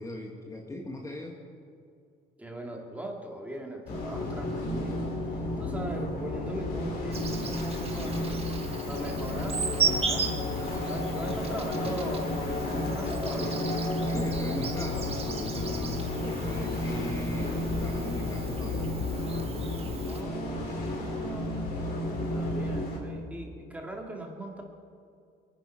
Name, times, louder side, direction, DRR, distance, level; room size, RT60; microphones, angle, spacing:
voice 1, 0.0-1.4 14.0-19.0, left 1 dB, 20° left, -1 dB, 1.8 m, -39 dB
voice 2, 2.4-5.2 5.6-8.2 8.5-10.3 10.8-13.6 19.9-21.7 22.3-24.6, right 1 dB, 10° right, 1 dB, 2.7 m, -39 dB
sound 1, 3.9-23.0, left 2 dB, 65° left, 4.1 m, -32 dB
Insect, 7.1-20.2, right 6 dB, 35° right, 1.6 m, -37 dB
22.0 x 9.8 x 5.8 m, 2.4 s
cardioid pair, 110°, 17 cm